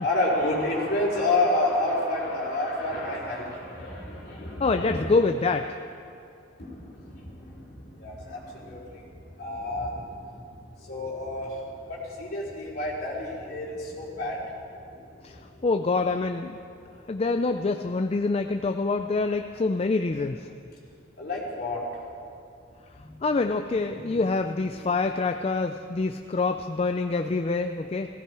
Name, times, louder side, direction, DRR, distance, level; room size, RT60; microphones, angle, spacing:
voice 1, 0.0-5.1 6.6-7.6 8.0-8.8 9.4-10.0 10.9-11.5 11.9-14.4 21.2-21.8 22.9-23.1 23.9-24.2, left 2 dB, 55° left, -5 dB, 4.0 m, -29 dB
voice 2, 4.6-5.8 15.2-15.4 15.6-16.6 17.1-20.5 23.2-28.1, left 3 dB, 30° left, 6 dB, 0.4 m, -26 dB
18.0 x 16.0 x 4.7 m, 2.5 s
head